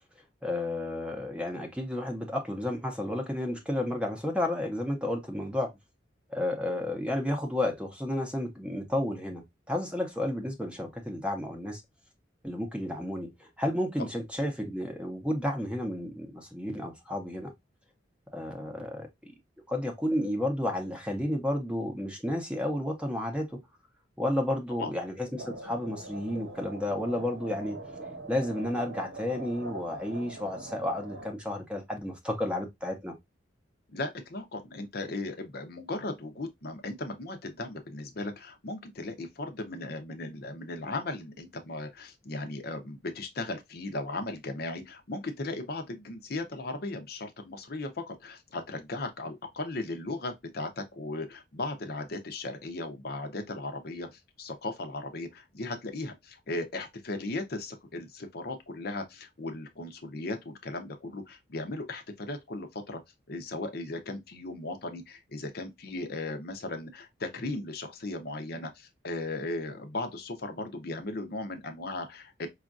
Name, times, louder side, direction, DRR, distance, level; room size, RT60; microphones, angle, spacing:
voice 1, 0.4-5.7 6.3-9.4 9.7-11.8 12.4-17.5 18.3-19.3 19.7-23.6 24.2-27.8 28.3-33.1, left 1 dB, 5° right, 0.7 m, -32 dB
sound 1, 25.4-31.3, right 2 dB, 80° right, 1.1 m, -43 dB
voice 2, 33.9-63.0 63.3-72.5, left 2 dB, 55° left, 0.7 m, -37 dB
4.9 x 2.4 x 2.5 m
head